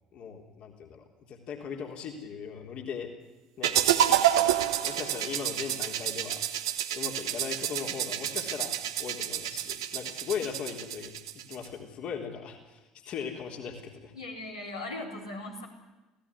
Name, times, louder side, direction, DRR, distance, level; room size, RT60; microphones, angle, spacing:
voice 1, 0.1-3.1 3.6-6.4 6.7-11.1 11.5-14.1, left 7 dB, 45° left, 2 dB, 3.7 m, -39 dB
sound 1, 3.6-11.7, right 11 dB, 70° right, 1.3 m, -29 dB
voice 2, 14.1-15.7, left 2 dB, 85° left, -3 dB, 4.1 m, -38 dB
27.5 x 17.0 x 9.8 m, 1.1 s
figure-of-eight pair, 60°, 3 cm